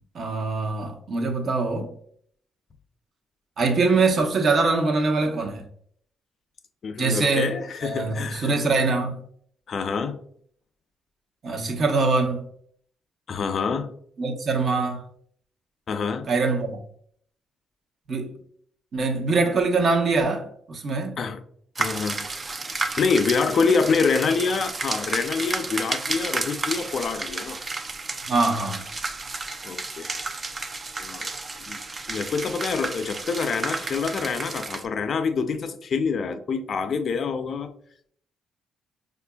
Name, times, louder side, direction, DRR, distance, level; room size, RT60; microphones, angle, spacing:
voice 1, 0.1-1.9 3.6-5.6 7.0-7.5 7.8-9.2 11.4-12.4 14.2-15.0 16.3-16.8 18.1-18.3 18.9-21.2 28.3-28.9, right 3 dB, 55° right, 0.8 m, -23 dB
voice 2, 6.8-8.6 9.7-10.2 13.3-13.9 15.9-16.3 21.2-21.4 21.8-22.3 23.0-27.6 29.6-30.1 31.0-31.3 31.6-31.8 32.1-37.7, left 5 dB, 55° left, 0.4 m, -26 dB
Gargoyle aquaticophone, 21.8-34.9, right 3 dB, 35° right, 0.4 m, -32 dB
4.9 x 2.5 x 2.2 m
cardioid pair, 90°, 0 cm